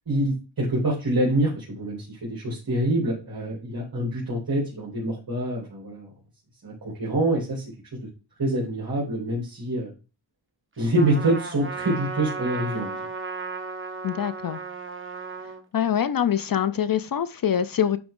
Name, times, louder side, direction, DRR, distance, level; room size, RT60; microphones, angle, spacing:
voice 1, 0.1-6.1 6.6-7.6 8.4-9.9 10.8-12.9, right 1 dB, 50° right, 3.0 m, -26 dB
Trumpet, 10.9-15.6, right 4 dB, 25° right, 1.2 m, -34 dB
voice 2, 14.0-14.6 15.7-18.0, left 9 dB, 50° left, 0.5 m, -24 dB
10.0 x 3.5 x 3.6 m
wide cardioid pair, 110°, 46 cm